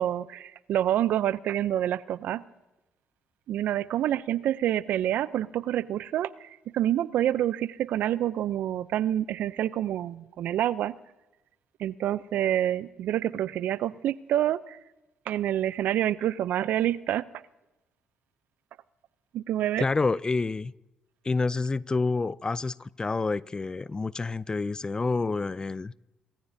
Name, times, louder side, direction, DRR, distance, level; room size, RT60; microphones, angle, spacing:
voice 1, 0.0-2.4 3.5-10.9 11.8-14.8 15.3-17.3 19.3-19.9, right 12 dB, 70° right, 0.5 m, -27 dB
voice 2, 19.8-20.7 21.2-25.9, left 3 dB, 25° left, 0.4 m, -28 dB
25.0 x 14.5 x 2.7 m
supercardioid pair, 65°, 3 cm